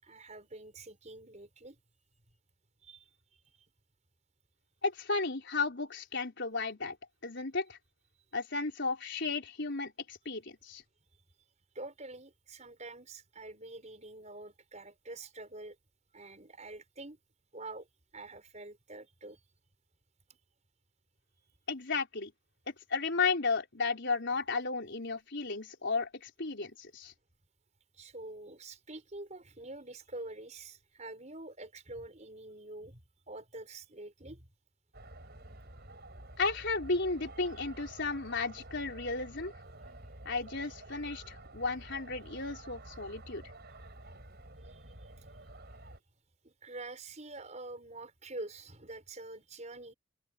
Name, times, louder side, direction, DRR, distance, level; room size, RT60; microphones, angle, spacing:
voice 1, 0.0-1.8 2.8-3.0 11.7-15.8 16.1-17.2 17.5-17.9 18.1-19.4 21.4-21.6 27.9-33.0 33.3-34.5 44.6-45.1 46.4-49.9, right 2 dB, 35° right, 5.7 m, -46 dB
voice 2, 4.8-7.0 7.2-7.8 8.3-10.8 21.7-22.3 22.7-27.1 36.4-39.5 40.2-43.4, left 4 dB, 55° left, 4.6 m, -34 dB
sound 1, 34.9-46.0, right 1 dB, 50° right, 7.2 m, -50 dB
open air
head